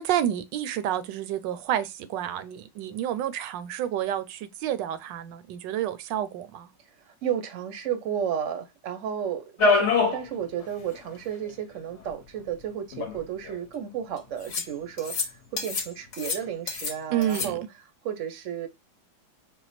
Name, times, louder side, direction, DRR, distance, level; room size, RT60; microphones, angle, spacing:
voice 1, 0.0-6.7 17.1-17.6, right 11 dB, 75° right, 1.2 m, -29 dB
voice 2, 7.1-17.6 18.0-18.7, right 9 dB, 60° right, 0.8 m, -33 dB
sound 1, 9.6-10.2 10.6-10.7 10.9-11.0 12.1-12.2 12.9-13.6 14.5-14.7 15.0-15.3 15.6-16.9 17.2-17.5, left 4 dB, 50° left, 0.9 m, -25 dB
4.2 x 2.2 x 4.1 m
omnidirectional pair, 2.1 m